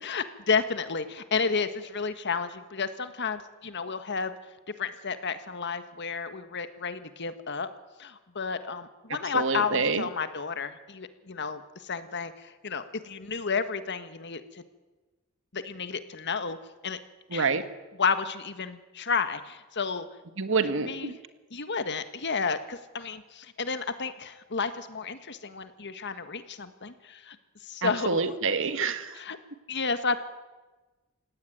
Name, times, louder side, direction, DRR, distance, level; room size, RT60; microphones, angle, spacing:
voice 1, 0.0-4.3 4.8-7.7 8.0-14.6 15.5-16.6 16.8-17.0 17.3-17.5 18.0-20.1 20.8-21.2 21.5-27.4 27.6-28.3 29.1-29.4 29.7-30.2, left 5 dB, 55° left, 11 dB, 1.6 m, -31 dB
voice 2, 9.3-10.0 17.3-17.6 20.4-21.2 27.8-29.1, right 4 dB, 65° right, 10 dB, 1.7 m, -27 dB
28.5 x 16.5 x 9.4 m, 1.2 s
head